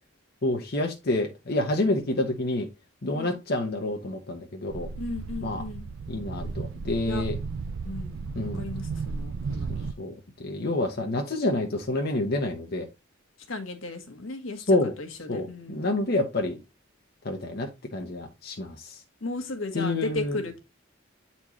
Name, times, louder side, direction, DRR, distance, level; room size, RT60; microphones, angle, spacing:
voice 1, 0.4-2.7 3.0-4.9 5.4-5.6 6.1-7.4 8.3-8.6 9.7-12.9 14.7-14.9 15.3-16.6 17.2-19.0 19.7-20.4, left 2 dB, 50° left, 1.0 m, -28 dB
voice 2, 3.0-3.4 5.0-5.9 6.4-6.5 7.1-7.2 7.8-9.9 13.5-15.8 19.2-20.6, left 2 dB, 75° left, 1.4 m, -35 dB
sound 1, 4.7-9.9, right 4 dB, 70° right, 0.4 m, -34 dB
8.5 x 4.3 x 3.1 m
head